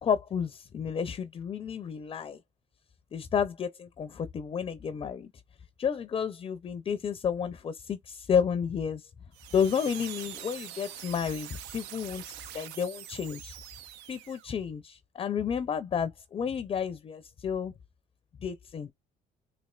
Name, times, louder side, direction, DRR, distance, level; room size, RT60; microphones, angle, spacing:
voice 1, 0.0-2.4 3.1-5.3 5.8-9.1 9.5-13.6 14.1-17.7 18.4-18.9, left 7 dB, 30° left, 0.4 m, -31 dB
sound 1, 9.3-14.5, right 12 dB, 90° right, 0.5 m, -44 dB
4.2 x 2.7 x 2.3 m
cardioid pair, 110°, 17 cm